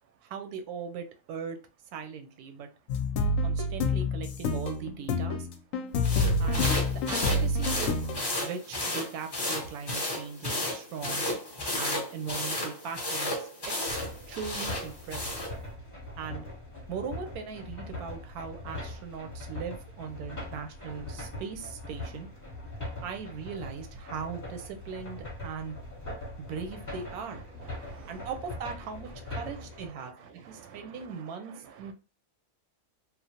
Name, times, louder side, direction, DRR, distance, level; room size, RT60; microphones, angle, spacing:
voice 1, 0.2-1.6 1.9-2.7 3.4-5.5 6.4-6.7 7.1-7.9 8.4-11.3 11.8-14.0 14.3-15.4 16.2-16.5 16.9-22.3 23.0-25.8 26.4-27.4 28.1-29.1 29.4-30.1 30.5-31.9, right 6 dB, 90° right, 1.1 m, -39 dB
sound 1, 2.9-8.2, left 2 dB, 70° left, 0.9 m, -28 dB
sound 2, 6.0-15.5, left 1 dB, 35° left, 0.4 m, -33 dB
sound 3, 13.9-29.9, left 1 dB, 15° left, 0.8 m, -41 dB
voice 2, 27.7-28.3 30.5-31.1, right 6 dB, 65° right, 0.8 m, -50 dB
3.1 x 2.1 x 2.7 m
omnidirectional pair, 1.5 m